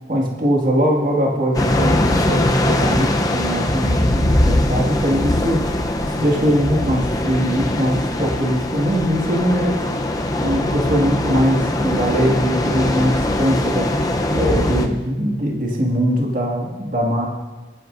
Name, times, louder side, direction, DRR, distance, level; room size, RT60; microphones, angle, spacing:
voice 1, 0.1-5.6 6.0-9.8 10.4-13.9 14.3-17.3, equal, 45° right, -2 dB, 2.2 m, -21 dB
sound 1, 1.5-14.9, left 1 dB, 20° left, 0.8 m, -21 dB
21.5 x 11.5 x 2.7 m, 1.3 s
head